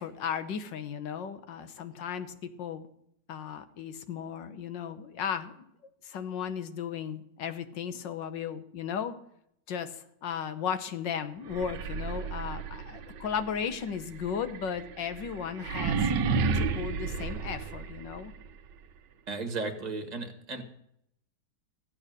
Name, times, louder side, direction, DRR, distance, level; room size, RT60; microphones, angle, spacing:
voice 1, 0.0-2.9 3.3-5.5 6.0-9.2 9.7-16.1 16.5-18.3, left 7 dB, 65° left, 11 dB, 1.5 m, -35 dB
sound 1, 11.5-18.4, right 5 dB, 65° right, 1.4 m, -32 dB
voice 2, 19.3-20.6, right 3 dB, 20° right, 4 dB, 1.6 m, -35 dB
15.0 x 8.7 x 6.6 m, 0.75 s
omnidirectional pair, 2.3 m